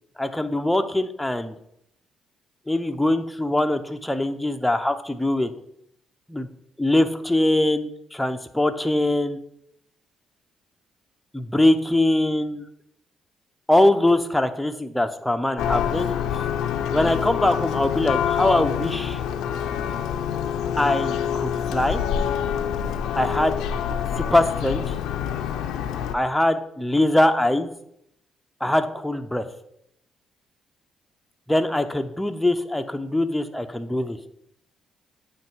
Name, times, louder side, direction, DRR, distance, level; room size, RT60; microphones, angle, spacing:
voice 1, 0.2-1.5 2.7-5.5 6.3-6.5 6.8-9.4 11.3-12.6 13.7-16.1 16.9-19.2 20.8-22.0 23.2-23.6 24.2-24.9 26.1-27.7 28.6-29.5 31.5-34.2, left 1 dB, 5° left, 7 dB, 0.6 m, -22 dB
Church bell, 15.6-26.1, left 8 dB, 90° left, 0.4 m, -26 dB
8.9 x 3.2 x 4.5 m, 0.76 s
cardioid pair, 90°, 0 cm